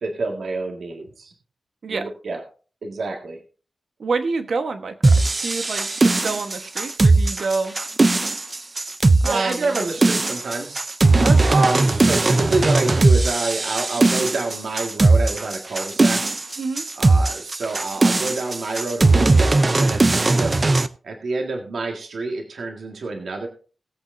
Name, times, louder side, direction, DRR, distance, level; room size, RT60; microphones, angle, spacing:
voice 1, 0.0-1.3 1.9-2.4 2.8-3.4 5.1-5.3 9.2-10.8 11.5-16.3 17.0-20.6 21.0-23.5, right 3 dB, 80° right, 2 dB, 1.8 m, -27 dB
voice 2, 4.0-5.1 5.4-7.8 9.2-9.8 11.2-11.6 16.6-16.8, right 4 dB, 65° right, 7 dB, 1.2 m, -27 dB
sound 1, 5.0-20.9, right 2 dB, 25° right, 0.5 m, -18 dB
19.5 x 8.2 x 2.6 m, 0.38 s
wide cardioid pair, 180°, 0 cm